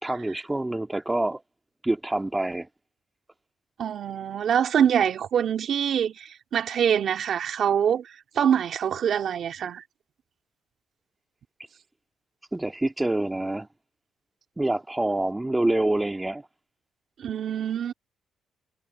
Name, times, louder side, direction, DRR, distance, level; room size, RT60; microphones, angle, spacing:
voice 1, 0.0-1.4 1.8-2.7 12.5-13.7 14.6-16.5, right 1 dB, 10° right, 2.2 m, -26 dB
voice 2, 3.8-9.8 17.2-17.9, right 8 dB, 60° right, 2.4 m, -25 dB
cardioid pair, 90°, 0 cm